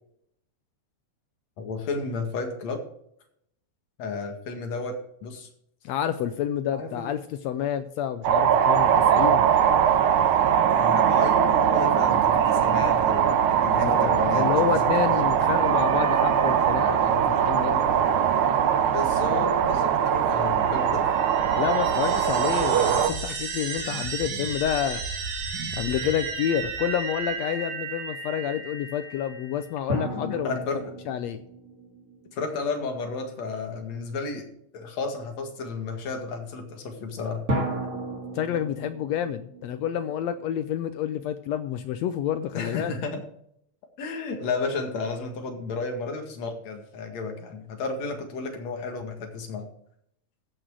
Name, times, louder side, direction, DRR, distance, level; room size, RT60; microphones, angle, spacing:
voice 1, 1.6-2.8 4.0-5.5 6.7-7.1 10.7-14.6 15.1-15.3 17.9-18.0 18.8-21.0 30.1-30.8 32.3-34.5 34.7-37.4 42.5-43.2 44.0-49.7, left 4 dB, 60° left, 4 dB, 3.1 m, -33 dB
voice 2, 5.8-9.5 13.7-17.8 21.6-25.0 25.7-30.6 31.1-31.4 38.3-42.9, left 10 dB, 80° left, 11 dB, 1.6 m, -29 dB
sound 1, 8.2-23.1, right 8 dB, 75° right, 1.2 m, -21 dB
sound 2, 20.4-29.7, right 4 dB, 90° right, 3.7 m, -34 dB
sound 3, 29.9-33.3 37.5-40.8, right 1 dB, 30° right, 2.1 m, -34 dB
14.5 x 6.1 x 4.7 m, 0.72 s
omnidirectional pair, 3.5 m